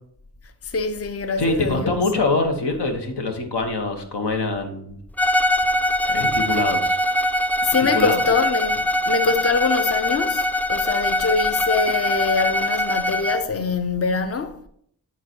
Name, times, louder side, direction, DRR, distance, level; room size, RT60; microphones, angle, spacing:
voice 1, 0.6-1.9 7.6-14.6, left 4 dB, 35° left, 0.7 m, -24 dB
voice 2, 1.4-5.0 6.1-7.0 7.9-8.2, left 2 dB, 85° left, 1.3 m, -24 dB
Bowed string instrument, 5.2-13.5, left 1 dB, 5° left, 0.3 m, -22 dB
10.5 x 3.9 x 4.5 m
wide cardioid pair, 55°, 40 cm